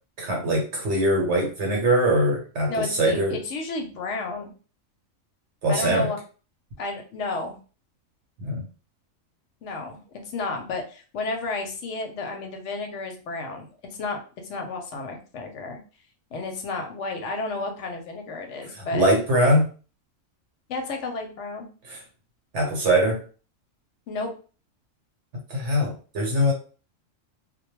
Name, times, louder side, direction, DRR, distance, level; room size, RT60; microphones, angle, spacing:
voice 1, 0.2-3.4 5.6-6.1 8.4-8.6 18.7-19.7 21.9-22.0 22.5-23.2 25.5-26.5, right 1 dB, 65° right, -1 dB, 1.0 m, -22 dB
voice 2, 2.7-4.5 5.7-6.2 6.8-7.6 9.6-10.0 10.3-13.7 14.0-15.8 16.3-19.1 20.7-21.7 24.1-24.3, left 3 dB, 70° left, 3 dB, 0.8 m, -32 dB
2.2 x 2.2 x 3.0 m, 0.37 s
omnidirectional pair, 1.4 m